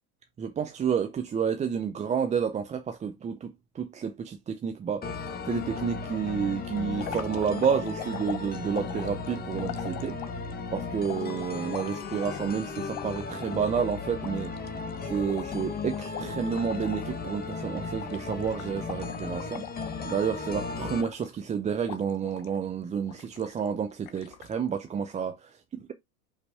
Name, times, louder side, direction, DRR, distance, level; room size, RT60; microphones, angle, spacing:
voice 1, 0.4-10.2 10.7-14.5 15.0-19.6 20.1-25.4, right 7 dB, 15° right, 0.6 m, -30 dB
sound 1, 5.0-21.0, left 4 dB, 20° left, 1.5 m, -36 dB
sound 2, 6.9-10.5 11.0-13.6 13.9-14.0 14.2-17.2 17.4-17.6 18.0-20.5 21.0-21.5 21.9-22.6 23.1-23.7 24.1-24.6, left 12 dB, 45° left, 1.2 m, -42 dB
5.5 x 4.0 x 4.7 m
hypercardioid pair, 110°, 45 cm